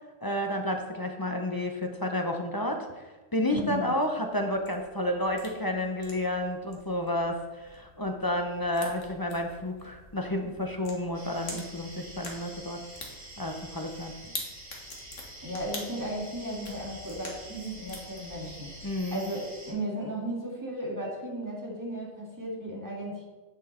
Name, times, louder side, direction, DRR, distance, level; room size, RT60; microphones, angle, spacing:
voice 1, 0.2-3.1 3.3-12.8 13.4-14.1 18.8-19.2, left 1 dB, 20° left, 3 dB, 0.6 m, -31 dB
voice 2, 3.5-4.0 15.4-18.7 19.1-23.2, equal, 15° right, -3 dB, 2.0 m, -35 dB
sound 1, 4.3-19.0, left 2 dB, 65° left, 1.9 m, -46 dB
sound 2, 11.1-19.7, right 1 dB, 60° right, 3.5 m, -47 dB
9.1 x 6.2 x 4.4 m, 1.2 s
omnidirectional pair, 1.4 m